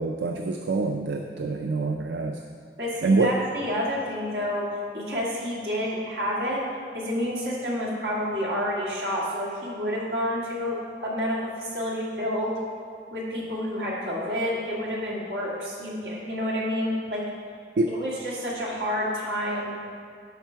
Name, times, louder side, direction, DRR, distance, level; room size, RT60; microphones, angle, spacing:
voice 1, 0.0-2.4 3.0-3.4 17.8-17.9, right 3 dB, 80° right, 3 dB, 0.4 m, -25 dB
voice 2, 2.8-4.6 4.9-6.6 6.9-12.5 13.1-17.2 17.9-19.7, equal, 65° right, -5 dB, 2.0 m, -29 dB
11.5 x 4.4 x 4.6 m, 2.2 s
head